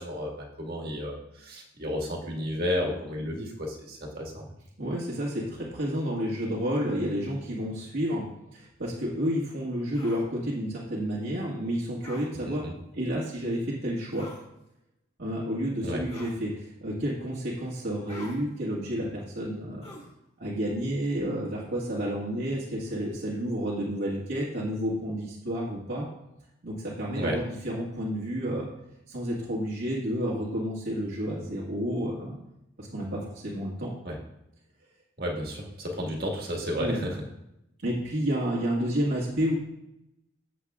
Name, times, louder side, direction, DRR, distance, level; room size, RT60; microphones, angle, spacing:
voice 1, 0.0-4.5 12.5-12.7 15.8-16.0 27.1-27.3 34.0-34.2 35.2-37.1, equal, 50° right, -1 dB, 1.8 m, -32 dB
voice 2, 4.8-8.2 8.5-12.6 12.9-14.3 15.2-19.8 20.4-26.1 26.6-28.7 29.1-32.4 32.8-33.9 36.8-37.0 37.8-39.5, equal, 75° right, -7 dB, 1.8 m, -30 dB
sound 1, 9.9-10.2 12.0-12.3 14.1-14.4 16.1-16.4 18.1-18.4 19.8-20.1, left 2 dB, 30° left, 2.1 m, -45 dB
15.0 x 7.6 x 2.4 m, 0.85 s
head